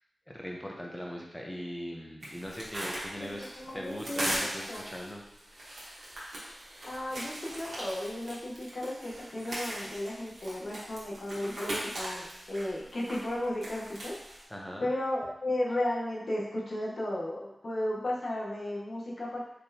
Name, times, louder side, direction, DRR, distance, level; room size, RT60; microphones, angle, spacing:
voice 1, 0.3-5.2 14.5-14.8, equal, 10° left, -1 dB, 0.8 m, -40 dB
sound 1, 2.2-14.4, right 1 dB, 80° right, 1.3 m, -40 dB
voice 2, 3.4-4.8 6.8-14.2 14.8-19.4, left 1 dB, 60° left, -5 dB, 1.2 m, -34 dB
4.4 x 3.3 x 2.9 m, 0.85 s
cardioid pair, 55°, 0 cm